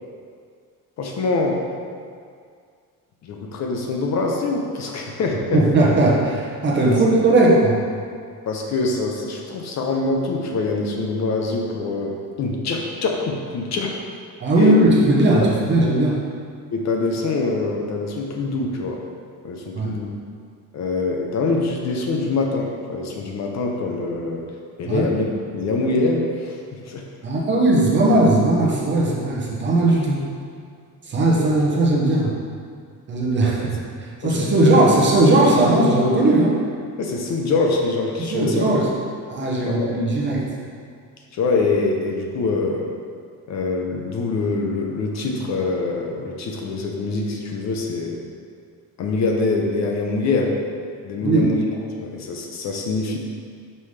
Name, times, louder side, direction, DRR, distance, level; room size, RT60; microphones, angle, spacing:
voice 1, 1.0-1.7 3.2-5.6 6.9-7.0 8.5-14.0 14.6-14.8 15.4-15.5 16.7-19.0 19.4-20.1 20.7-24.5 24.8-25.3 25.5-27.1 33.4-33.5 34.2-34.6 37.0-38.7 39.6-40.0 41.3-42.9 43.5-48.2 49.0-50.6 51.0-51.6 52.0-53.2, left 3 dB, 50° left, 1 dB, 0.7 m, -24 dB
voice 2, 5.5-7.7 14.4-16.2 19.8-20.0 24.8-25.1 27.2-30.3 31.0-32.3 33.1-36.6 38.2-38.9 39.3-40.5 51.2-51.5, right 2 dB, 30° right, -4 dB, 0.9 m, -18 dB
5.6 x 5.4 x 3.2 m, 2.2 s
cardioid pair, 175°, 34 cm